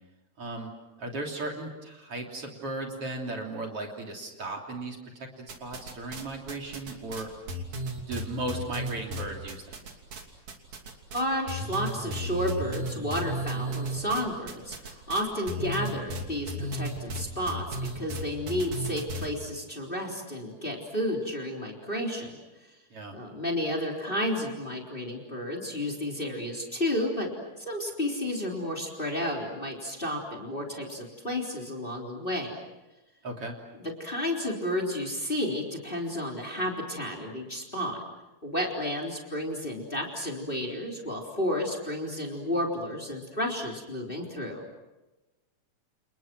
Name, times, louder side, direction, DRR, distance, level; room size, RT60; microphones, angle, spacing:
voice 1, 0.4-0.7 1.0-7.3 8.1-9.8 22.9-23.2 33.2-33.6, right 2 dB, 45° right, 1 dB, 4.0 m, -36 dB
sound 1, 5.5-6.2 6.5-10.2 10.5-11.2 11.5-19.3, right 1 dB, 65° right, 4.2 m, -34 dB
voice 2, 11.1-22.4 23.1-27.3 27.6-32.6 33.7-38.0 38.4-44.6, left 1 dB, 15° left, 0 dB, 3.8 m, -32 dB
29.5 x 29.5 x 6.2 m, 1.1 s
omnidirectional pair, 3.5 m